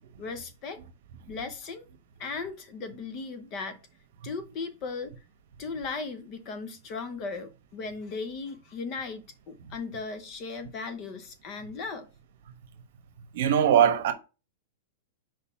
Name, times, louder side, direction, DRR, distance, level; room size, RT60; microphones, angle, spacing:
voice 1, 0.2-0.8 1.3-1.8 2.2-3.8 4.2-5.1 5.6-12.1, left 4 dB, 30° left, 0.8 m, -37 dB
voice 2, 13.3-14.1, right 9 dB, 55° right, 1.1 m, -21 dB
4.7 x 4.1 x 5.7 m
supercardioid pair, 165°, 0 cm